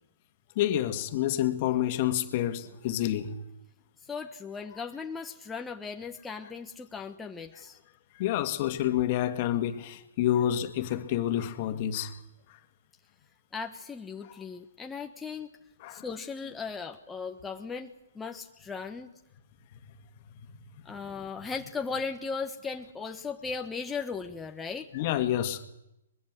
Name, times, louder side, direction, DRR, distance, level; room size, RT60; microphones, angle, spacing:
voice 1, 0.6-3.4 4.7-4.8 6.4-6.5 7.5-7.6 8.2-12.1 14.2-14.3 15.8-16.2 21.6-21.7 24.9-25.7, left 12 dB, 40° left, 2.1 m, -29 dB
voice 2, 4.0-7.8 13.5-15.5 15.9-19.1 20.8-24.9, left 5 dB, 10° left, 1.3 m, -37 dB
23.0 x 22.5 x 7.7 m
hypercardioid pair, 130°, 0 cm